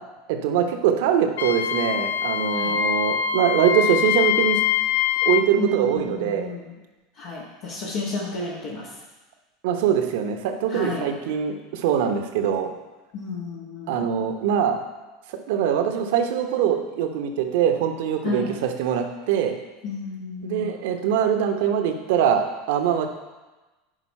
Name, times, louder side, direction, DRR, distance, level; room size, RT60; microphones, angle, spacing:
voice 1, 0.3-4.6 5.2-6.5 9.6-12.7 13.9-14.8 15.5-19.6 20.4-23.1, right 8 dB, 65° right, 6 dB, 0.9 m, -23 dB
Wind instrument woodwind instrument, 1.4-5.5, left 10 dB, 75° left, 0.5 m, -23 dB
voice 2, 2.5-2.8 5.6-6.8 7.1-9.0 10.7-11.1 13.1-14.1 18.2-18.6 19.8-20.8, left 4 dB, 60° left, -5 dB, 1.7 m, -32 dB
10.0 x 4.9 x 4.3 m, 1.2 s
hypercardioid pair, 80°, 0 cm